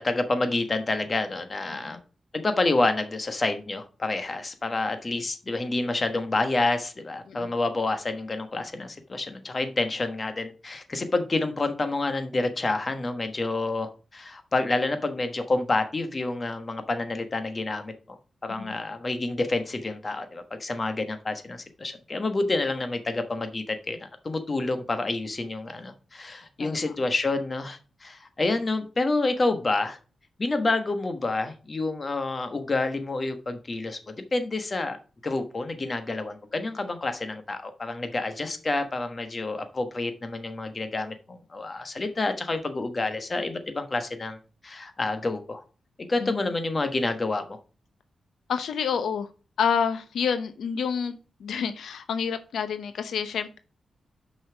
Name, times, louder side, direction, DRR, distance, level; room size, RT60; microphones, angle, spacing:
voice 1, 0.0-2.0 2.3-30.0 30.4-35.0 35.2-44.4 44.6-45.6 46.0-47.6, left 2 dB, 30° left, 8 dB, 1.2 m, -28 dB
voice 2, 48.5-49.3 49.6-53.6, left 7 dB, 85° left, 9 dB, 0.8 m, -29 dB
6.3 x 5.6 x 6.0 m, 0.35 s
wide cardioid pair, 110°, 0 cm